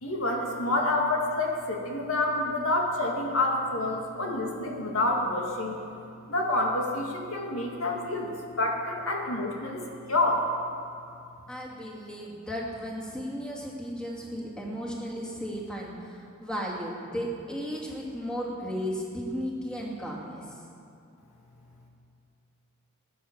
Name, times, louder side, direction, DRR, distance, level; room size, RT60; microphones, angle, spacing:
voice 1, 0.0-5.8 6.3-9.8 10.1-10.5, left 2 dB, 70° left, 0 dB, 2.1 m, -28 dB
voice 2, 11.5-20.5, equal, 5° left, -4 dB, 2.5 m, -35 dB
19.5 x 10.5 x 7.3 m, 2.6 s
head